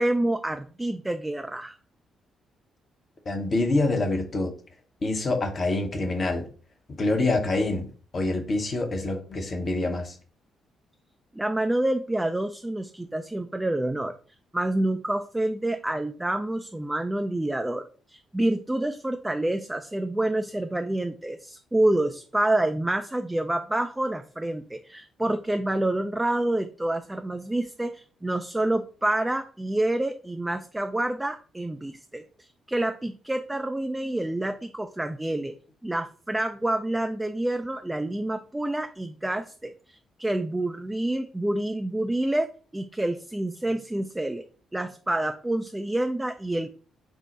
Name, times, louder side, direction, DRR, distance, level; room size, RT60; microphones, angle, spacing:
voice 1, 0.0-1.8 11.3-14.1 14.5-35.5 35.8-44.4 44.7-46.7, right 1 dB, 10° right, 6 dB, 0.3 m, -28 dB
voice 2, 3.3-4.5 5.0-6.5 7.0-10.2, left 2 dB, 40° left, 4 dB, 0.8 m, -26 dB
4.4 x 2.0 x 4.0 m, 0.40 s
figure-of-eight pair, 40°, 0 cm